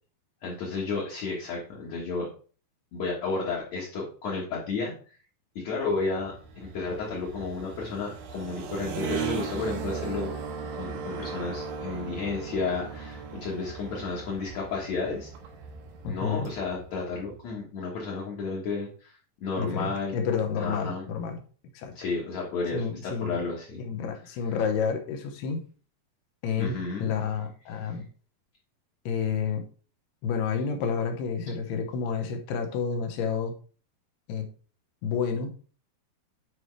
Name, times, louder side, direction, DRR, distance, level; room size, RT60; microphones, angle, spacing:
voice 1, 0.4-2.3 2.9-4.9 5.6-6.3 6.6-10.3 10.8-15.3 16.1-20.2 20.6-21.0 22.0-23.8 26.6-27.1, left 4 dB, 55° left, -4 dB, 2.2 m, -32 dB
sound 1, 5.8-17.4, right 6 dB, 80° right, 3.3 m, -38 dB
voice 2, 16.0-16.5 19.6-21.4 21.7-21.9 22.7-23.4 23.8-25.6 26.4-28.1 29.1-29.6 30.2-33.5 34.3-34.5 35.0-35.5, left 6 dB, 75° left, 5 dB, 2.9 m, -30 dB
9.8 x 4.6 x 3.2 m, 0.38 s
omnidirectional pair, 4.9 m